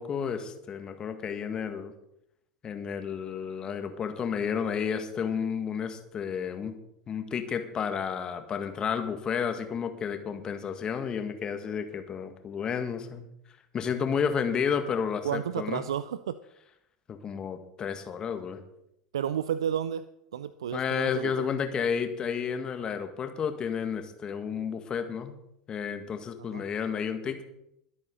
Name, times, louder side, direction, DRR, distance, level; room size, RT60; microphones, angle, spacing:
voice 1, 0.0-1.9 2.6-6.7 7.1-13.3 13.7-15.8 17.1-18.6 20.7-25.4 25.7-27.4, left 7 dB, 30° left, 7 dB, 1.8 m, -31 dB
voice 2, 15.2-16.4 19.1-20.0 20.3-21.5 26.5-26.6, right 9 dB, 70° right, 15 dB, 0.4 m, -31 dB
22.0 x 8.5 x 4.0 m, 0.80 s
figure-of-eight pair, 80°, 3 cm